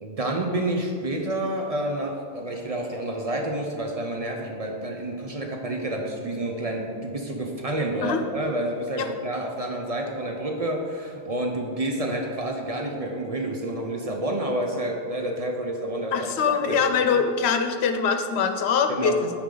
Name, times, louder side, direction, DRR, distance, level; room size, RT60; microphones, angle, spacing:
voice 1, 0.0-16.1 16.5-16.9 18.9-19.2, right 1 dB, 40° right, 2 dB, 0.7 m, -29 dB
voice 2, 16.1-19.3, left 6 dB, 85° left, 7 dB, 0.9 m, -23 dB
8.4 x 4.9 x 3.8 m, 2.2 s
omnidirectional pair, 1.1 m